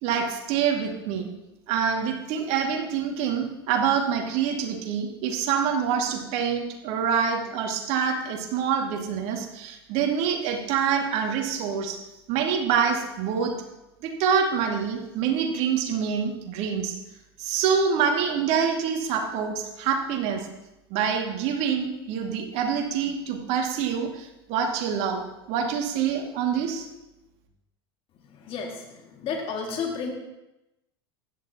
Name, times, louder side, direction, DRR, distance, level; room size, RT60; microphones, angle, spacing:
voice 1, 0.0-1.3 1.7-12.0 12.3-13.6 14.0-17.0 17.4-20.5 20.9-25.2 25.5-26.9, right 7 dB, 55° right, 3 dB, 2.1 m, -26 dB
voice 2, 28.3-30.1, left 5 dB, 45° left, 1 dB, 2.2 m, -32 dB
16.0 x 11.0 x 2.9 m, 0.95 s
hypercardioid pair, 85°, 13 cm